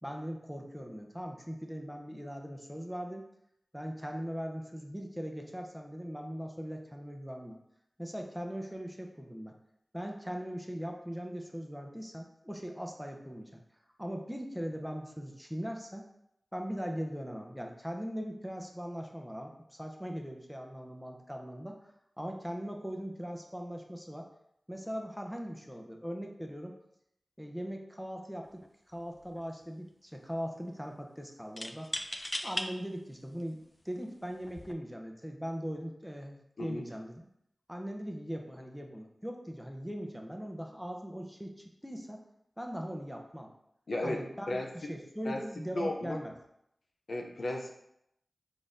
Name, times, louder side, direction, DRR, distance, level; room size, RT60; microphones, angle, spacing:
voice 1, 0.0-3.2 3.7-7.6 8.0-9.5 9.9-13.6 14.0-16.1 16.5-21.8 22.2-24.3 24.7-26.7 27.4-31.9 32.4-37.2 37.7-42.2 42.6-43.5 44.0-44.6 44.9-46.3, equal, ahead, 2 dB, 0.7 m, -40 dB
sound 1, 28.4-28.7 29.0-29.6 31.6-32.7 33.4-33.5 34.4-34.7, left 1 dB, 25° left, 0.4 m, -37 dB
voice 2, 43.9-44.9 45.2-45.4 45.7-46.2 47.1-47.7, left 1 dB, 75° left, 1 dB, 0.6 m, -35 dB
4.8 x 3.8 x 2.7 m, 0.76 s
wide cardioid pair, 50°, 0 cm